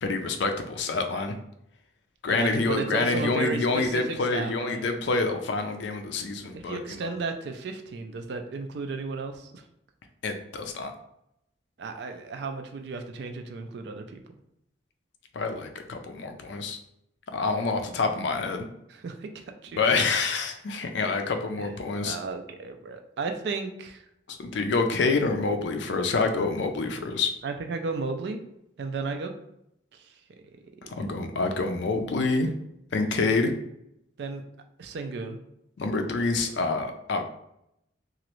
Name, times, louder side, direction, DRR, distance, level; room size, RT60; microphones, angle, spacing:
voice 1, 0.0-1.4 2.2-7.1 10.2-10.9 15.3-16.8 17.3-18.6 19.8-22.2 24.3-27.3 30.8-32.5 32.9-33.5 35.8-37.2, left 3 dB, 70° left, 6 dB, 0.4 m, -27 dB
voice 2, 2.3-4.9 6.5-9.6 11.8-14.4 18.9-19.3 19.6-19.8 21.6-21.7 22.0-24.1 27.4-28.4 28.8-29.3 29.9-30.1 30.8-31.2 34.2-34.4 34.8-35.4, right 4 dB, 60° right, 6 dB, 0.3 m, -34 dB
3.0 x 2.5 x 3.0 m, 0.79 s
head